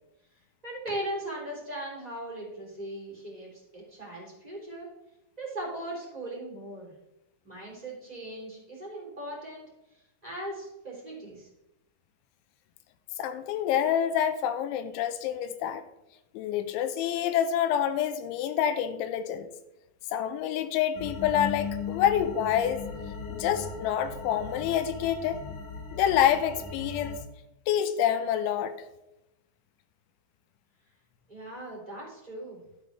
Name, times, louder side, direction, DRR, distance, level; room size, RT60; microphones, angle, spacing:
voice 1, 0.6-4.9 5.4-6.9 7.4-9.7 10.2-11.5 31.3-32.6, right 1 dB, 10° right, -5 dB, 2.5 m, -38 dB
voice 2, 13.2-15.8 16.3-19.5 20.1-22.9 23.3-25.4 25.9-27.2 27.7-28.8, left 10 dB, 90° left, 9 dB, 3.0 m, -27 dB
sound 1, 20.9-27.2, left 5 dB, 65° left, 2.0 m, -38 dB
12.0 x 8.2 x 3.4 m, 0.93 s
omnidirectional pair, 5.3 m